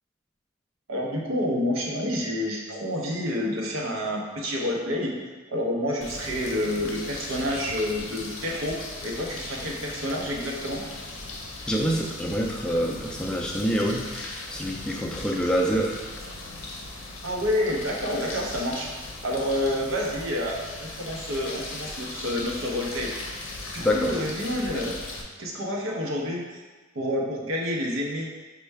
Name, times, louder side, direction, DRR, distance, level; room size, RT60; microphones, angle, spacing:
voice 1, 0.9-5.1 5.5-10.8 17.2-18.9 19.2-23.1 23.7-25.0 25.4-26.6 26.9-28.3, left 1 dB, 75° right, -1 dB, 0.7 m, -28 dB
sound 1, 6.0-25.2, left 2 dB, 70° left, 0.6 m, -38 dB
voice 2, 11.7-16.0 23.8-24.2, equal, 5° left, -1 dB, 0.3 m, -26 dB
5.3 x 2.2 x 3.3 m, 1.3 s
head